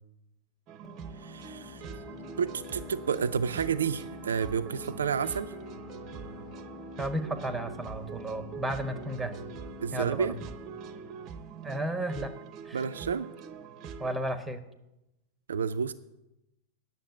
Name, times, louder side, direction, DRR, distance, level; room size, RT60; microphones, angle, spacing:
sound 1, 0.7-14.2, right 6 dB, 35° right, 0.7 m, -44 dB
sound 2, 0.8-12.2, left 6 dB, 25° left, 2.9 m, -48 dB
voice 1, 1.2-1.9 2.4-5.5 9.8-10.4 12.7-13.3 15.5-15.9, right 6 dB, 65° right, 10 dB, 0.4 m, -30 dB
voice 2, 7.0-9.3 9.9-10.3 11.6-12.3 12.6-12.8 14.0-14.6, right 1 dB, 5° right, 10 dB, 1.1 m, -33 dB
9.1 x 7.2 x 8.9 m, 0.94 s
figure-of-eight pair, 90°, 0 cm